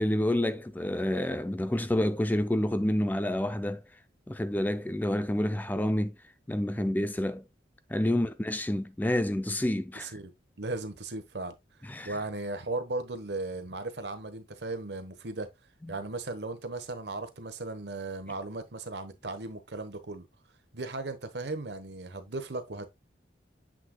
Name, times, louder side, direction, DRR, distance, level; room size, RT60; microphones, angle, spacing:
voice 1, 0.0-3.8 4.3-6.2 6.5-7.4 7.9-10.1 11.8-12.2, left 1 dB, 10° left, 0.3 m, -28 dB
voice 2, 9.9-10.3 10.6-11.5 12.0-15.5 15.9-20.3 20.7-22.9, right 2 dB, 70° right, 1.1 m, -36 dB
7.6 x 6.2 x 2.2 m
head